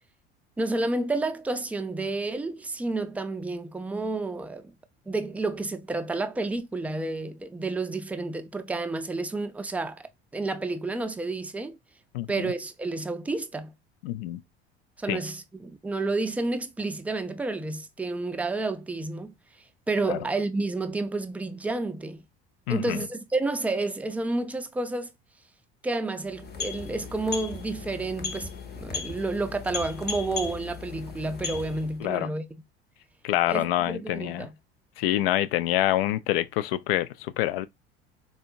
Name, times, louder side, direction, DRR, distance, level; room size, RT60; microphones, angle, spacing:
voice 1, 0.6-4.7 5.1-10.0 10.3-11.8 12.3-13.7 15.0-19.3 19.9-22.2 22.7-25.1 25.8-32.5 33.4-34.5, right 2 dB, 5° right, 0.4 m, -30 dB
voice 2, 12.1-12.5 14.0-14.4 15.1-15.2 20.1-20.2 22.7-23.0 32.0-32.3 33.2-34.5 35.0-37.7, left 14 dB, 65° left, 0.4 m, -26 dB
sound 1, 26.2-32.0, left 5 dB, 30° left, 0.8 m, -37 dB
4.3 x 2.2 x 2.4 m
figure-of-eight pair, 60°, 32 cm